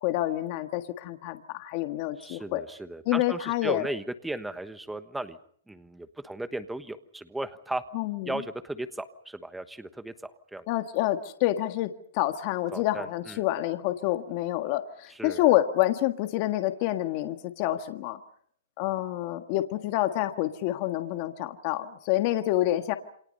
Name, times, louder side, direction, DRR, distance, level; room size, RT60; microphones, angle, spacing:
voice 1, 0.0-2.6 3.1-3.9 7.9-8.3 10.7-18.2 18.8-22.9, left 15 dB, 35° left, 8 dB, 1.6 m, -28 dB
voice 2, 2.2-5.4 5.7-7.8 8.2-10.7 12.7-13.4 15.1-15.4, right 1 dB, 5° right, 11 dB, 1.2 m, -36 dB
28.5 x 26.5 x 5.5 m, 0.62 s
hypercardioid pair, 165°, 0 cm